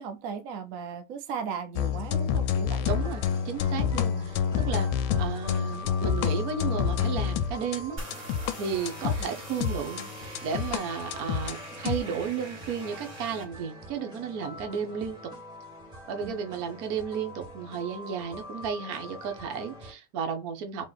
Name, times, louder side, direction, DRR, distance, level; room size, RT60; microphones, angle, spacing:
voice 1, 0.0-2.9 3.9-4.4 16.2-16.6, right 6 dB, 80° right, 0.7 m, -37 dB
sound 1, 1.7-8.6 8.9-10.8 11.1-12.0, left 8 dB, 85° left, 1.4 m, -28 dB
sound 2, 2.8-19.9, left 1 dB, ahead, 1.7 m, -44 dB
voice 2, 2.8-4.9 5.2-8.0 8.6-15.3 16.1-20.9, right 6 dB, 55° right, 1.2 m, -33 dB
sound 3, 8.0-13.4, equal, 40° right, 1.9 m, -43 dB
3.7 x 3.1 x 3.9 m
omnidirectional pair, 2.2 m